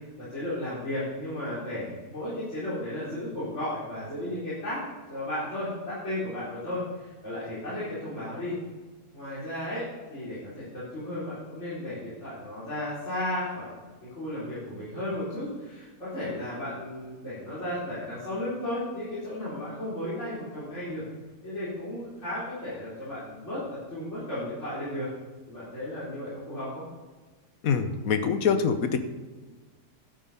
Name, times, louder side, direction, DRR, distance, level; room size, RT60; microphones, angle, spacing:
voice 1, 0.2-4.8 5.1-8.6 9.1-13.8 14.1-21.0 21.4-25.1 25.5-26.8, left 1 dB, 45° left, -11 dB, 4.6 m, -34 dB
voice 2, 27.6-29.0, left 6 dB, 60° left, 9 dB, 1.3 m, -24 dB
12.0 x 8.9 x 5.6 m, 1.3 s
omnidirectional pair, 1.7 m